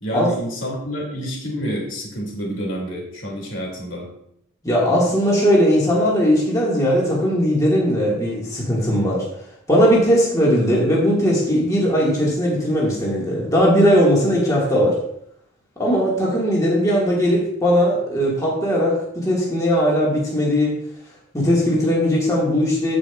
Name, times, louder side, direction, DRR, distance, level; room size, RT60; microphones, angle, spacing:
voice 1, 0.0-4.1, equal, 70° left, -1 dB, 2.5 m, -28 dB
voice 2, 4.6-9.3 9.7-15.0 15.8-20.7 21.3-23.0, equal, 15° left, -5 dB, 1.7 m, -18 dB
15.0 x 5.0 x 2.4 m, 0.74 s
head